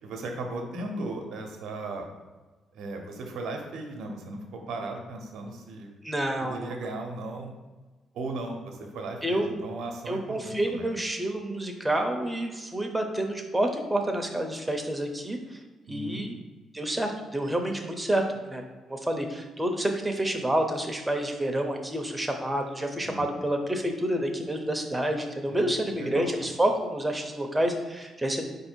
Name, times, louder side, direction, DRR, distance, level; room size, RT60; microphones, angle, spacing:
voice 1, 0.0-2.1 2.7-5.9 6.4-7.5 8.1-11.0 15.9-16.3 23.0-23.2 25.5-26.3, right 2 dB, 80° right, 3 dB, 0.7 m, -37 dB
voice 2, 6.0-6.7 9.2-9.5 10.1-15.6 15.9-16.4 16.7-28.4, right 1 dB, 10° right, 3 dB, 0.7 m, -28 dB
4.5 x 2.7 x 4.4 m, 1.3 s
cardioid pair, 90°, 0 cm